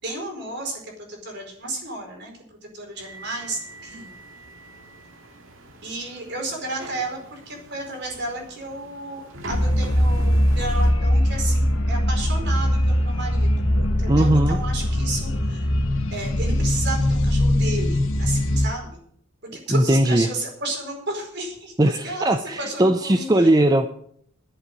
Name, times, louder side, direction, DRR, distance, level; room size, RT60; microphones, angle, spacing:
voice 1, 0.0-4.1 5.8-13.5 14.0-15.7 16.1-19.0 19.5-23.5, right 2 dB, 50° right, 2 dB, 4.7 m, -33 dB
sound 1, 3.0-10.9, right 1 dB, 70° right, 2.1 m, -42 dB
sound 2, 9.5-18.7, left 1 dB, 70° left, 1.7 m, -21 dB
voice 2, 14.1-14.6 19.7-20.3 21.8-23.9, right 1 dB, 15° right, 8 dB, 0.5 m, -19 dB
11.5 x 7.9 x 9.0 m, 0.64 s
head